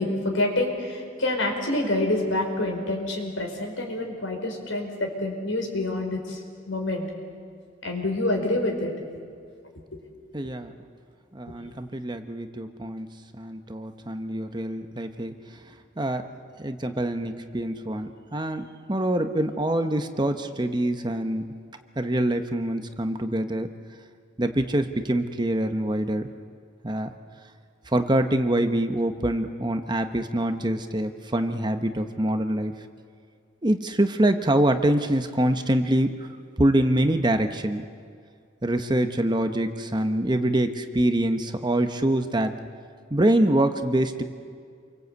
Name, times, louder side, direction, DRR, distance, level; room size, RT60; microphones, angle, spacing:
voice 1, 0.0-6.4 6.7-7.1 7.8-8.9, left 2 dB, 80° left, 3 dB, 5.0 m, -27 dB
voice 2, 10.3-10.7 11.3-13.1 13.4-15.3 16.0-16.2 16.6-21.5 22.0-23.7 24.4-26.3 26.8-27.1 27.9-32.7 33.6-36.1 36.6-37.8 38.6-42.6 43.1-44.2, right 1 dB, 20° right, 7 dB, 1.0 m, -25 dB
28.5 x 23.5 x 8.2 m, 2.2 s
head